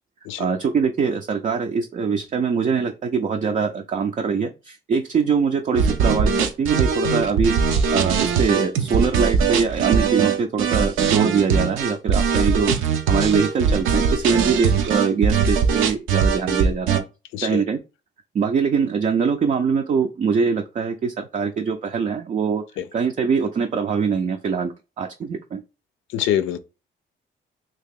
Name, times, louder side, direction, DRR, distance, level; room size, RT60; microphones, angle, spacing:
voice 1, 0.4-7.5 7.9-12.8 13.1-17.0 17.4-17.8 18.3-22.6 22.9-25.6, right 6 dB, 40° right, 0.4 m, -23 dB
sound 1, 5.7-17.0, right 6 dB, 85° right, 0.6 m, -20 dB
voice 2, 17.3-17.6 22.8-22.9 26.1-26.6, left 11 dB, 85° left, 0.4 m, -24 dB
2.9 x 2.8 x 3.6 m
cardioid pair, 90°, 20 cm